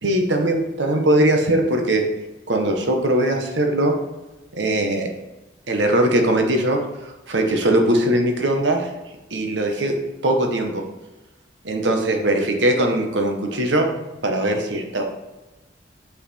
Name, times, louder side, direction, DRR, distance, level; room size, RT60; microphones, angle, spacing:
voice 1, 0.0-2.0 2.5-4.0 4.6-5.1 5.7-6.8 7.3-8.9 9.3-10.0 10.2-10.8 11.6-13.9 14.2-15.0, right 1 dB, 85° right, 3 dB, 1.3 m, -20 dB
6.9 x 5.9 x 4.3 m, 1.0 s
head